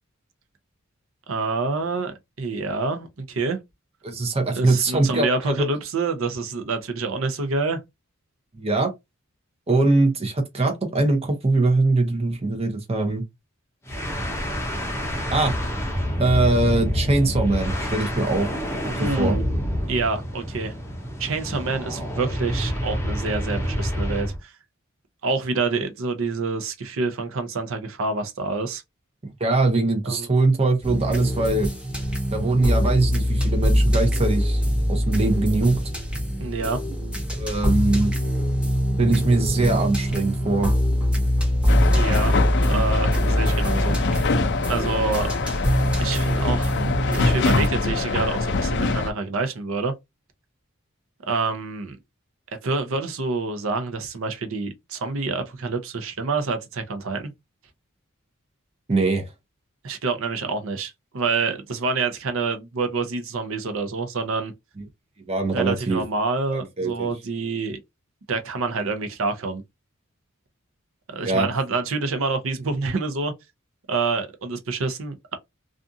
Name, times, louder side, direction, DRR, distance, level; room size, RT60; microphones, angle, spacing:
voice 1, 1.3-3.6 4.5-7.8 19.0-19.4 19.9-20.7 21.2-24.5 25.2-28.8 30.0-30.3 36.4-36.8 41.9-44.4 44.7-45.3 46.0-46.7 47.1-49.9 51.3-52.0 52.6-57.3 59.8-64.5 65.5-67.8 68.3-69.6 71.1-73.3 73.9-75.4, right 3 dB, 65° right, 0.6 m, -27 dB
voice 2, 4.0-5.7 8.5-8.9 9.7-13.2 15.3-15.5 16.2-18.5 19.0-19.4 29.4-31.7 32.3-34.6 34.9-35.8 37.3-38.1 39.0-40.7 58.9-59.2 64.8-64.9 65.3-66.0 66.8-67.1 71.2-71.5, right 2 dB, 30° right, 0.7 m, -22 dB
sound 1, 13.9-24.4, equal, 10° left, 0.6 m, -27 dB
sound 2, 30.8-47.7, equal, 5° right, 0.9 m, -23 dB
sound 3, 41.7-49.1, left 3 dB, 55° left, 0.4 m, -24 dB
2.5 x 2.4 x 2.6 m
head